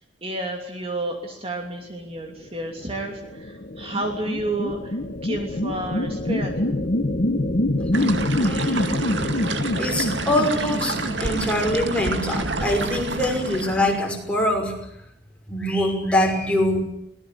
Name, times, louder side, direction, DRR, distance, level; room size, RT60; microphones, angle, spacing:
voice 1, 0.2-6.7, right 1 dB, 35° right, 3 dB, 2.9 m, -31 dB
sound 1, 2.8-12.6, left 1 dB, 50° left, 1.3 m, -26 dB
sound 2, 7.9-14.0, right 2 dB, 80° right, 2.2 m, -28 dB
voice 2, 8.4-9.0 9.8-14.7 15.5-16.8, left 1 dB, 5° left, 1 dB, 5.8 m, -24 dB
23.5 x 19.0 x 8.7 m, 0.76 s
head